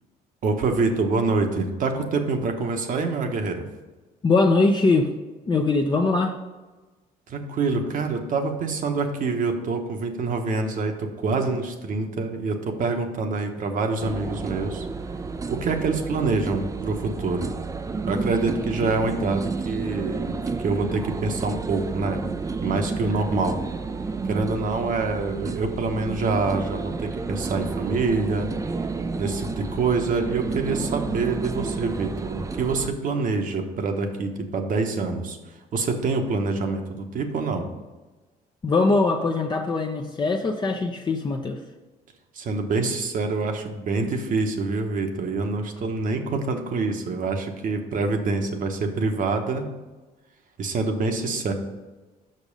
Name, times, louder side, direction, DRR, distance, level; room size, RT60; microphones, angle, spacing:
voice 1, 0.4-3.7 7.3-14.9 15.5-17.5 18.1-20.3 20.6-22.2 22.6-23.6 24.2-28.5 29.2-35.4 35.7-37.7 42.3-49.7 50.6-51.5, right 3 dB, 55° right, 5 dB, 1.1 m, -26 dB
voice 2, 4.2-5.1 5.5-6.4 38.6-41.6, left 3 dB, 30° left, 2 dB, 0.6 m, -21 dB
sound 1, 14.0-32.9, right 4 dB, 20° right, 0.4 m, -31 dB
6.1 x 5.4 x 5.3 m, 1.2 s
cardioid pair, 90°, 16 cm